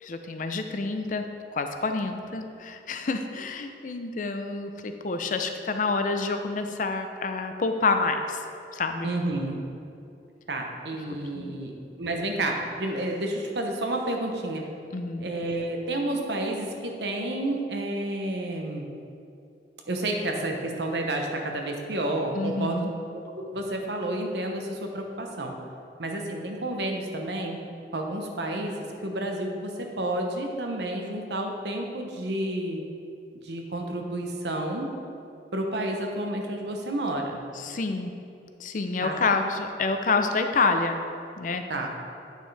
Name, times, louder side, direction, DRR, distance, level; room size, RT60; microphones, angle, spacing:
voice 1, 0.0-8.4 8.7-9.1 11.3-11.6 14.9-15.3 22.4-22.9 37.6-38.1 38.6-41.0 41.4-41.7, left 3 dB, 45° left, 6 dB, 0.5 m, -28 dB
voice 2, 9.0-9.6 10.5-11.7 12.0-14.7 15.2-18.9 19.9-22.9 23.1-25.5 26.0-27.6 27.9-32.8 33.4-34.9 35.5-37.4 39.0-39.2 41.7-41.9, right 1 dB, 70° right, 2 dB, 0.9 m, -30 dB
9.1 x 6.2 x 3.3 m, 2.6 s
head